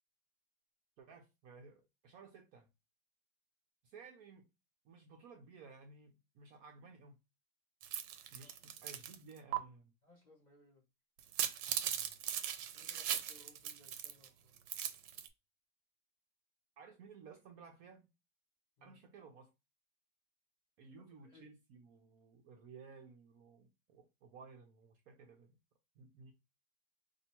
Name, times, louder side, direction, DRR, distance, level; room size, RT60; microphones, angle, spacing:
voice 1, 1.0-2.7 3.8-4.5 4.8-7.2 8.3-9.9 11.8-12.2 16.8-18.1 18.8-19.5 20.8-25.6 26.0-26.3, right 4 dB, 65° right, 1.0 m, -57 dB
sound 1, 7.8-9.2 9.5-9.6 11.2-14.3 14.6-15.3, right 10 dB, 85° right, 1.2 m, -39 dB
voice 2, 10.0-10.8 12.7-14.6 18.8-19.0 21.0-21.5, left 1 dB, 30° left, 1.0 m, -64 dB
2.9 x 2.6 x 4.2 m
omnidirectional pair, 1.9 m